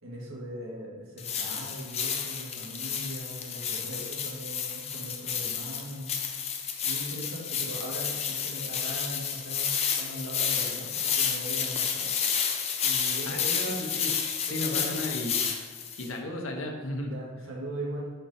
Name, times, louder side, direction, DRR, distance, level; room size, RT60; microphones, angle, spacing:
voice 1, 0.0-6.2 6.8-12.1 12.8-13.8 14.5-14.9 17.1-18.1, right 1 dB, 85° right, -3 dB, 1.6 m, -39 dB
sound 1, 1.2-16.1, left 7 dB, 30° left, 0.5 m, -31 dB
voice 2, 13.3-14.1 14.5-15.5 16.0-17.2, left 1 dB, 75° left, 2 dB, 0.9 m, -34 dB
4.4 x 4.2 x 5.2 m, 1.5 s
head